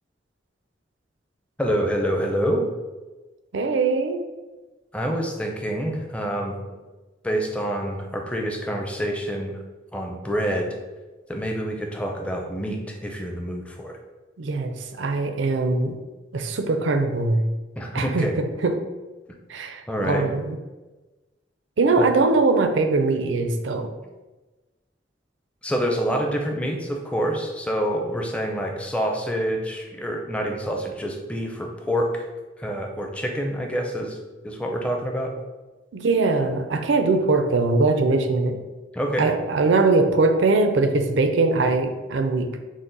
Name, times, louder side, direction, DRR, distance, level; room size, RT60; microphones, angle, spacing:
voice 1, 1.6-2.7 4.9-6.6 7.2-9.5 9.9-10.7 11.3-13.9 17.8-18.3 19.9-20.3 22.0-22.1 25.6-32.2 32.6-34.2 34.4-35.3 38.9-39.3, equal, 5° left, 1 dB, 0.5 m, -27 dB
voice 2, 3.5-4.2 14.4-16.0 16.3-17.4 17.9-18.8 19.5-20.6 21.8-23.9 35.9-38.6 39.2-42.5, right 3 dB, 80° right, 6 dB, 0.5 m, -21 dB
6.2 x 2.1 x 3.9 m, 1.2 s
head